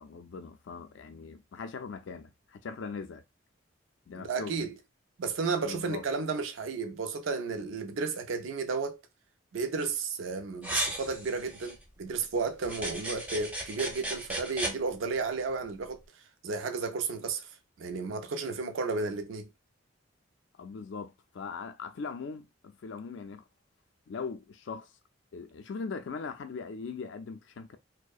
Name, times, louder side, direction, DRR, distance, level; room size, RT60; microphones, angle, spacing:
voice 1, 0.0-3.2 4.1-4.7 5.6-6.0 20.6-23.4 24.1-24.9 25.3-27.8, left 5 dB, 65° left, 0.4 m, -40 dB
voice 2, 4.1-4.7 5.2-9.0 9.5-16.0 16.4-17.5 17.8-19.5, right 4 dB, 70° right, 0.4 m, -33 dB
piirrustus terävä, 10.6-11.7 12.6-14.7, right 1 dB, 5° right, 0.5 m, -35 dB
2.6 x 2.0 x 2.3 m
head